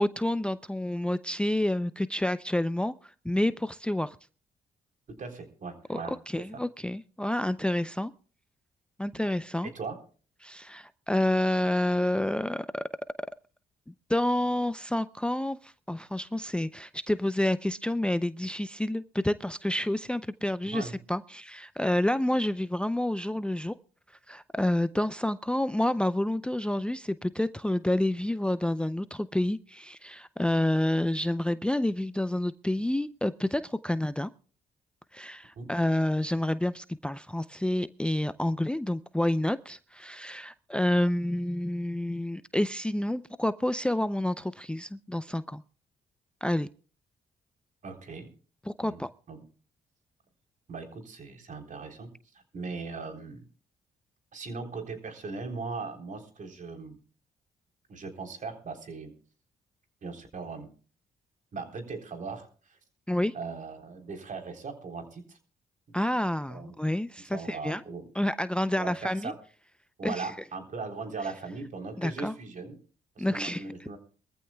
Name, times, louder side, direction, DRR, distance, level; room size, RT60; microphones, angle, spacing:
voice 1, 0.0-4.2 5.9-8.1 9.0-9.7 10.4-12.8 14.1-23.7 24.3-34.3 35.1-45.6 46.4-46.7 48.7-49.1 63.1-63.3 65.9-67.8 68.1-69.3 70.0-70.3 72.0-72.3 73.2-73.6, left 1 dB, 5° left, 14 dB, 0.5 m, -29 dB
voice 2, 5.2-6.2 9.6-10.0 20.6-21.0 35.6-35.7 47.8-48.3 48.8-49.0 49.3-49.4 50.7-52.1 52.5-53.4 54.3-57.0 57.9-59.1 60.0-60.7 61.5-62.8 63.3-65.4 66.5-66.7 67.3-68.1 68.8-69.4 70.0-72.8 73.2-74.0, right 4 dB, 50° right, 5 dB, 3.7 m, -39 dB
23.0 x 14.5 x 2.3 m, 0.39 s
cardioid pair, 70°, 16 cm